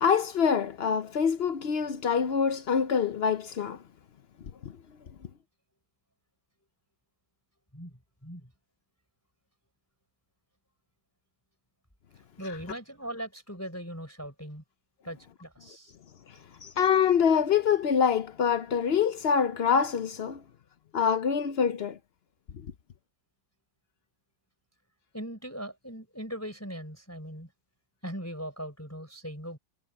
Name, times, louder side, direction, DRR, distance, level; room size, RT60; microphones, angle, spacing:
voice 1, 0.0-3.8 16.6-20.4 20.9-22.0, left 7 dB, 90° left, 0.5 m, -25 dB
voice 2, 12.4-14.6 15.0-15.9 16.3-16.4 25.1-27.5 28.0-29.6, equal, 5° left, 4.3 m, -39 dB
omnidirectional pair, 2.1 m